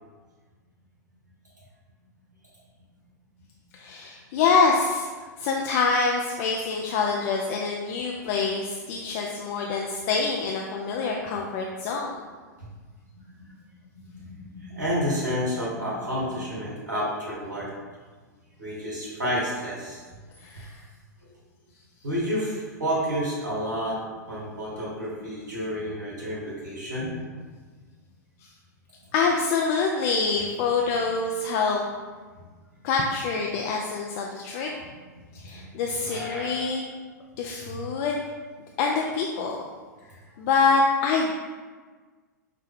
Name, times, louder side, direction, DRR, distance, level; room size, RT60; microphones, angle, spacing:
voice 1, 3.7-5.1 5.4-12.1 20.4-20.8 29.1-31.8 32.8-34.7 35.3-36.8 37.4-38.2 38.8-39.6 40.4-41.3, left 4 dB, 45° left, 0 dB, 0.4 m, -25 dB
voice 2, 14.0-17.7 18.6-20.0 22.0-24.0 24.3-27.4 33.5-33.6 35.4-36.7 37.6-37.8, equal, 75° right, -6 dB, 1.2 m, -30 dB
5.7 x 2.1 x 3.5 m, 1.4 s
figure-of-eight pair, 100°, 10 cm